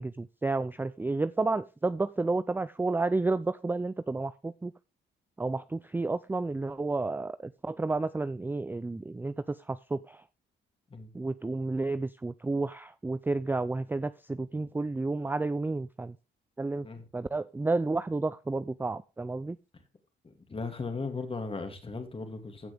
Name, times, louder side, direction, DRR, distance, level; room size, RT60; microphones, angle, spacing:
voice 1, 0.0-4.7 5.4-10.2 11.1-16.2 16.6-16.9 17.1-19.6, right 3 dB, 10° right, 0.4 m, -31 dB
voice 2, 20.2-22.7, left 4 dB, 30° left, 2.7 m, -37 dB
15.5 x 6.1 x 3.5 m
cardioid pair, 90°, 20 cm